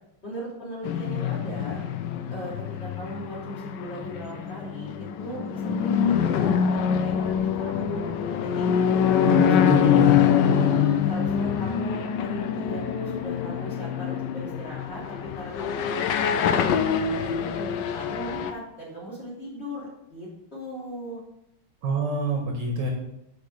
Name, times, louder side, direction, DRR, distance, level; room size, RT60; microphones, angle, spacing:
voice 1, 0.2-1.8 2.3-8.7 9.2-9.7 10.4-16.6 17.1-21.2, equal, 30° left, -7 dB, 3.3 m, -38 dB
sound 1, 0.8-18.5, left 8 dB, 70° left, 1.1 m, -24 dB
voice 2, 9.2-10.7 21.8-22.9, right 2 dB, 60° right, 1 dB, 1.8 m, -27 dB
6.2 x 5.2 x 6.5 m, 0.81 s
omnidirectional pair, 2.3 m